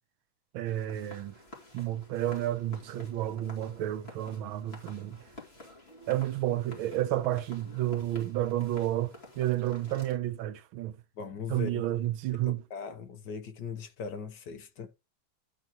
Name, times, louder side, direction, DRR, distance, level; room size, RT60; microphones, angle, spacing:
voice 1, 0.5-1.3 1.7-5.2 6.1-10.9 11.5-12.6, right 13 dB, 80° right, 1.5 m, -31 dB
sound 1, 0.7-10.2, left 1 dB, 30° left, 3.1 m, -50 dB
voice 2, 11.2-12.0 12.5-14.9, left 6 dB, 60° left, 1.6 m, -39 dB
11.0 x 4.1 x 6.0 m
omnidirectional pair, 2.2 m